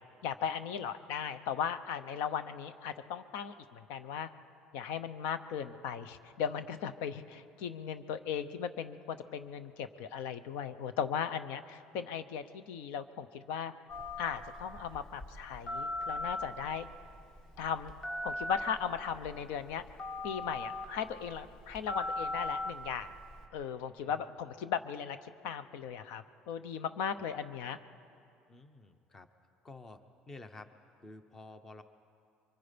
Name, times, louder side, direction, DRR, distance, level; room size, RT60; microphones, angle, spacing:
voice 1, 0.2-4.3 4.7-13.7 14.2-16.9 17.6-17.9 18.2-19.8 20.2-23.1 23.5-27.8, left 7 dB, 90° left, 12 dB, 0.9 m, -37 dB
Telephone, 13.9-23.5, left 1 dB, 30° left, 1.7 m, -40 dB
voice 2, 28.5-29.3 29.6-30.0 30.3-30.7 31.0-31.8, left 2 dB, 15° left, 10 dB, 0.8 m, -50 dB
28.5 x 24.0 x 5.2 m, 2.5 s
cardioid pair, 180°, 3 cm